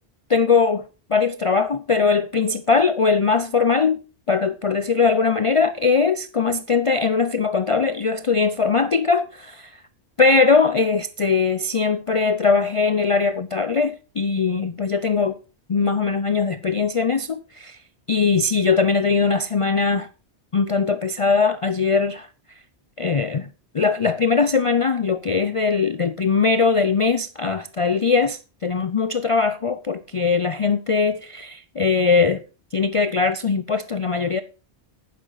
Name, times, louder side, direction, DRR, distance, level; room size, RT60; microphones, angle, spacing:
voice 1, 0.3-4.0 4.3-9.7 10.2-15.4 15.7-17.8 18.1-20.1 20.5-22.3 23.0-23.5 23.7-32.4 32.7-34.4, left 4 dB, 45° left, 0.4 m, -20 dB
11.0 x 10.0 x 4.0 m
omnidirectional pair, 1.2 m